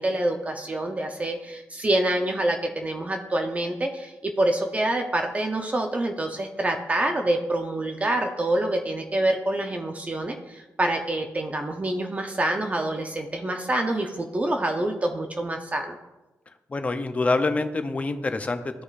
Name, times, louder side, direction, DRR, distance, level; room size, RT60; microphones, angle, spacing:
voice 1, 0.0-16.0, right 1 dB, 25° right, 3 dB, 0.6 m, -26 dB
voice 2, 16.7-18.8, left 3 dB, 25° left, 8 dB, 0.5 m, -26 dB
13.0 x 4.9 x 2.4 m, 1.0 s
wide cardioid pair, 130°, 6 cm